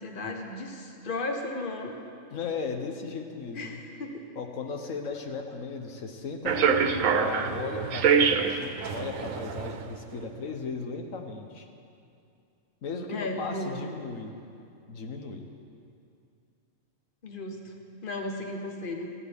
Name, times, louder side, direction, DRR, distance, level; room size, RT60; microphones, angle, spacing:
voice 1, 0.0-2.0 3.5-4.2 13.1-13.9 17.2-17.7 18.0-19.1, left 2 dB, 40° left, 2 dB, 1.4 m, -35 dB
voice 2, 2.3-3.8 4.3-11.7 12.8-14.3 14.9-15.5, left 4 dB, 85° left, 4 dB, 1.4 m, -36 dB
sound 1, 6.4-9.9, right 6 dB, 80° right, 1.2 m, -25 dB
19.5 x 15.0 x 3.6 m, 2.5 s
omnidirectional pair, 1.3 m